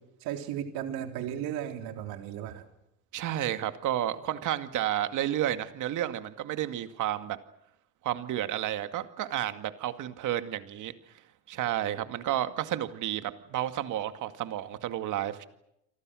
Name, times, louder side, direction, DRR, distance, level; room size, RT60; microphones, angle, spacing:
voice 1, 0.2-2.6, right 10 dB, 70° right, 5 dB, 3.8 m, -35 dB
voice 2, 3.1-7.4 8.0-10.9 11.5-15.4, right 12 dB, 50° right, 9 dB, 2.2 m, -31 dB
29.0 x 25.0 x 6.4 m, 0.81 s
cardioid pair, 150°, 38 cm